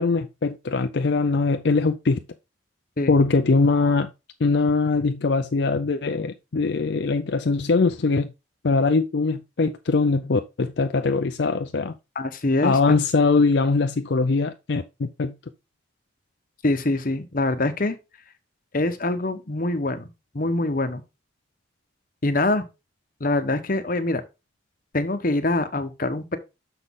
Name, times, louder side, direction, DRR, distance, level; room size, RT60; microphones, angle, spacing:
voice 1, 0.0-2.2 3.1-4.1 4.4-8.3 8.6-11.9 12.6-15.3, left 4 dB, 65° left, 0.5 m, -22 dB
voice 2, 12.2-12.9 16.6-18.0 18.7-20.1 20.3-21.0 22.2-22.6 23.2-24.2 24.9-26.4, left 2 dB, 45° left, 1.0 m, -24 dB
6.6 x 6.2 x 3.7 m
head